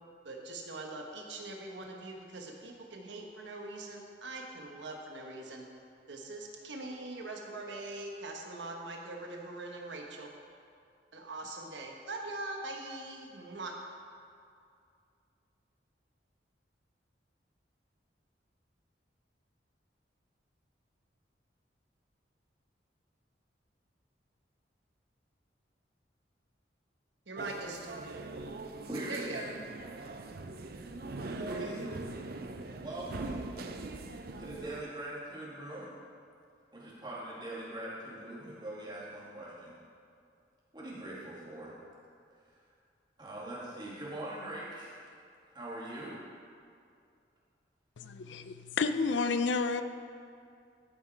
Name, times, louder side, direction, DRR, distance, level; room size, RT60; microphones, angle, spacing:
voice 1, 0.2-5.7 6.1-10.3 11.1-13.7 27.3-27.8 29.1-29.4, right 2 dB, 80° right, 1 dB, 1.2 m, -42 dB
sound 1, 27.4-34.8, right 2 dB, 55° right, 0.5 m, -41 dB
voice 2, 28.9-29.6 31.2-31.9 32.8-33.4 34.4-35.9 36.7-39.7 40.7-41.8 43.2-45.0 45.5-46.1, right 1 dB, 25° right, -7 dB, 2.3 m, -42 dB
voice 3, 48.0-49.8, left 4 dB, 80° left, 10 dB, 0.5 m, -30 dB
13.5 x 5.9 x 4.5 m, 2.4 s
head